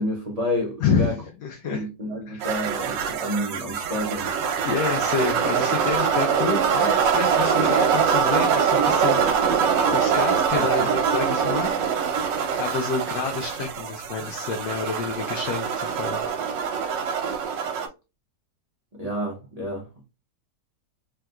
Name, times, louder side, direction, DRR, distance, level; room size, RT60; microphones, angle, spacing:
voice 1, 0.0-1.2 1.6-4.3 10.5-10.9 18.9-20.0, left 1 dB, 45° right, 0.5 m, -30 dB
voice 2, 0.8-1.9 2.3-2.5 4.6-9.6 9.9-11.7 12.5-16.2, left 5 dB, 75° left, 1.2 m, -28 dB
sound 1, 2.4-17.9, right 7 dB, 85° right, 1.3 m, -23 dB
3.4 x 2.8 x 2.3 m
omnidirectional pair, 1.9 m